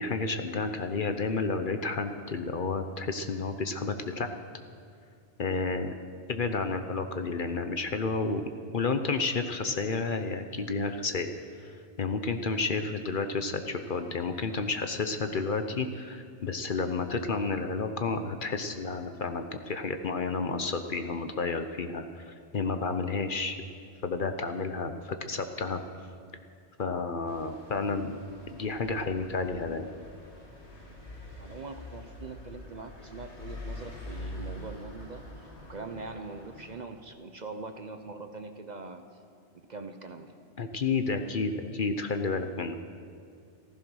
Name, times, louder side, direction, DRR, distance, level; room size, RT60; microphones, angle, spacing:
voice 1, 0.0-4.3 5.4-5.9 6.3-8.5 8.7-11.3 11.6-23.6 24.0-25.8 26.8-28.2 28.5-29.9 40.6-42.7, left 4 dB, 50° left, 7 dB, 0.9 m, -31 dB
sound 1, 27.3-36.8, left 1 dB, 70° left, 2.2 m, -45 dB
voice 2, 31.4-35.2 35.6-39.0 39.5-40.3, right 3 dB, 40° right, 7 dB, 0.8 m, -42 dB
15.0 x 14.5 x 6.3 m, 2.3 s
omnidirectional pair, 1.2 m